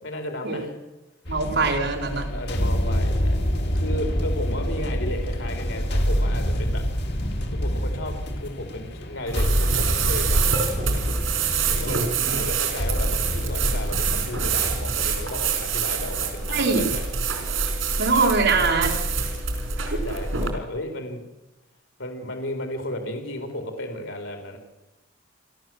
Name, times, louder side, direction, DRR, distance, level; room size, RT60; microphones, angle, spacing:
voice 1, 0.0-0.7 2.3-3.4 3.7-6.8 7.5-10.4 11.7-17.0 19.2-19.3 19.7-21.2 22.0-24.6, left 1 dB, 85° left, 5 dB, 3.9 m, -34 dB
sound 1, 1.2-15.6, equal, 60° left, 3.3 m, -27 dB
voice 2, 1.3-2.3 11.9-12.3 16.5-16.8 18.0-18.9 19.9-20.0, right 4 dB, 60° right, 2 dB, 4.1 m, -23 dB
sound 2, 9.3-20.5, right 5 dB, 90° right, 4.7 m, -26 dB
29.5 x 12.5 x 7.7 m, 1.0 s
head